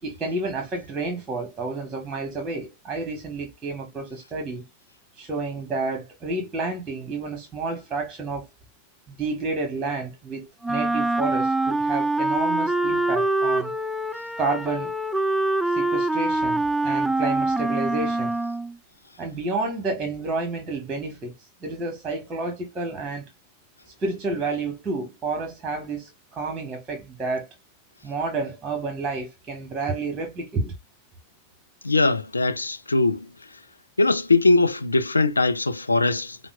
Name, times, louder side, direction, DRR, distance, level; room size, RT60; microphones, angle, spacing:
voice 1, 0.0-4.6 5.2-8.5 9.1-13.7 14.4-14.9 15.7-18.3 19.2-21.3 21.6-23.3 24.0-27.5 28.0-30.7, right 3 dB, 20° right, 1.3 m, -30 dB
Wind instrument woodwind instrument, 10.6-18.7, right 2 dB, 5° right, 0.3 m, -24 dB
voice 2, 31.8-33.3 34.0-36.4, left 3 dB, 80° left, 0.5 m, -21 dB
5.6 x 2.1 x 2.3 m
figure-of-eight pair, 90°, 0 cm